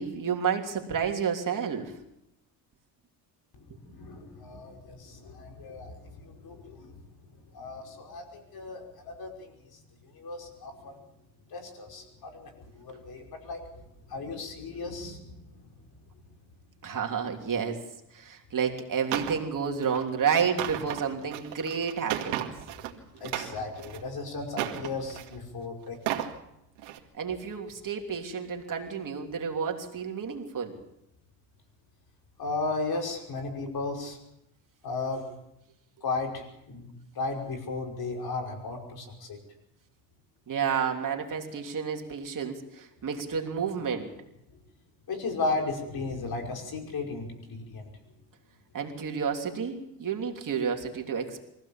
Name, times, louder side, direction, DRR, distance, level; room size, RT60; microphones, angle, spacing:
voice 1, 0.0-1.9 16.8-17.8 18.1-22.5 27.2-30.7 40.5-44.1 48.7-51.4, right 6 dB, 40° right, 3 dB, 3.2 m, -30 dB
voice 2, 3.8-7.0 7.5-9.5 10.1-10.9 11.5-13.6 14.1-15.6 23.2-26.3 32.4-34.2 34.8-35.2 36.0-36.9 37.2-39.4 45.1-47.9, left 3 dB, 50° left, 2 dB, 5.5 m, -35 dB
sound 1, 19.1-19.4 19.8-20.0 20.4-22.9 23.2-24.0 24.5-25.3 25.9-26.3 26.8-27.0, right 12 dB, 85° right, 2.2 m, -34 dB
24.0 x 16.0 x 7.3 m, 0.84 s
cardioid pair, 95°, 47 cm